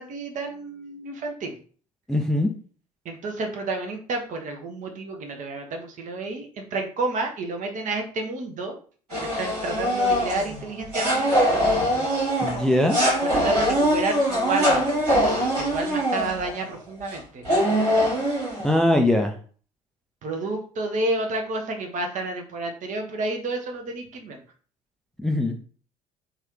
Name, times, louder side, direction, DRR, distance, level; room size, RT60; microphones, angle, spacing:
voice 1, 0.0-1.5 3.0-8.8 9.1-11.6 13.2-17.4 20.2-24.4, right 2 dB, 40° right, 3 dB, 0.7 m, -30 dB
voice 2, 2.1-2.5 12.4-13.0 18.6-19.3 25.2-25.6, left 1 dB, 5° left, 4 dB, 0.3 m, -21 dB
sound 1, 9.1-16.6 17.1-17.2 17.4-18.8, equal, 75° right, 1.5 m, -23 dB
3.0 x 2.4 x 3.1 m, 0.43 s
figure-of-eight pair, 55°, 20 cm